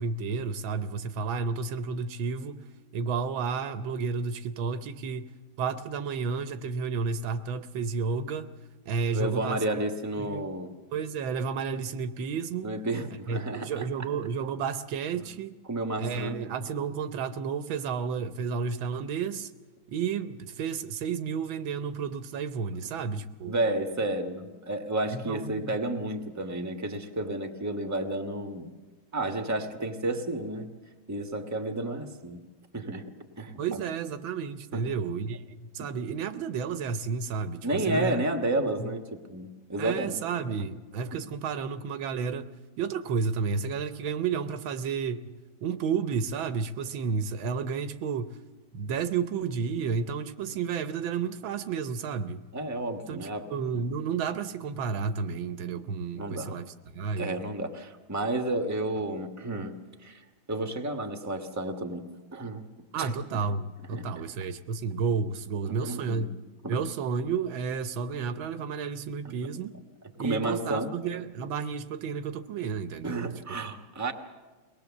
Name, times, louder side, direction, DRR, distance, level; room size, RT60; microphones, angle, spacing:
voice 1, 0.0-2.7 2.9-5.3 5.6-8.5 8.9-9.6 10.2-10.4 10.9-12.7 13.3-15.6 16.0-19.5 19.9-23.5 25.1-25.8 33.6-38.2 38.6-38.9 39.8-42.5 42.8-45.4 45.6-48.4 48.7-52.4 53.1-57.4 62.9-66.3 66.7-69.7 70.2-73.3, right 5 dB, 80° right, 11 dB, 1.6 m, -31 dB
voice 2, 9.1-10.7 12.6-13.8 15.7-16.4 23.1-28.7 29.1-30.7 31.1-32.4 32.7-33.1 33.4-33.8 34.7-34.8 35.8-35.9 37.6-40.2 41.1-41.2 52.5-53.4 56.1-56.6 57.2-59.7 60.0-60.2 60.5-62.1 62.3-62.7 63.0-63.1 63.9-64.1 65.7-66.2 66.6-66.8 69.2-69.3 70.2-70.9 73.0-74.1, right 1 dB, 10° right, 5 dB, 1.1 m, -31 dB
23.0 x 19.0 x 7.1 m, 1.3 s
omnidirectional pair, 2.2 m